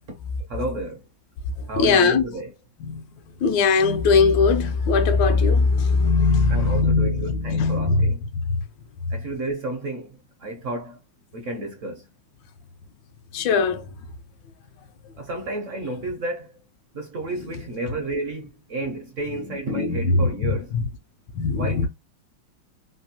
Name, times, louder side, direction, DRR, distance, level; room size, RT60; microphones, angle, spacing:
voice 1, 0.5-1.1 1.7-2.5 6.5-8.2 9.1-11.0 11.3-12.1 15.2-16.5 16.9-20.7 21.6-21.9, right 2 dB, 65° right, 0.7 m, -31 dB
voice 2, 1.6-2.2 2.8-3.0 3.4-8.1 8.5-8.6 13.3-13.9 19.7-20.8 21.3-21.9, left 4 dB, 75° left, 1.2 m, -20 dB
3.4 x 2.6 x 2.7 m
omnidirectional pair, 2.2 m